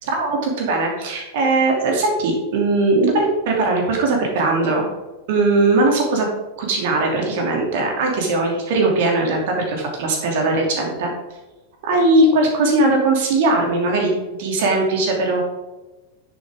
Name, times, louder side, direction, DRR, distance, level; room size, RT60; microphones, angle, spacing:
voice 1, 0.0-4.8 5.3-6.3 6.6-11.1 11.8-14.1 14.4-15.4, right 2 dB, 50° right, 1 dB, 2.8 m, -19 dB
10.5 x 7.4 x 3.7 m, 1.1 s
figure-of-eight pair, 90°, 0 cm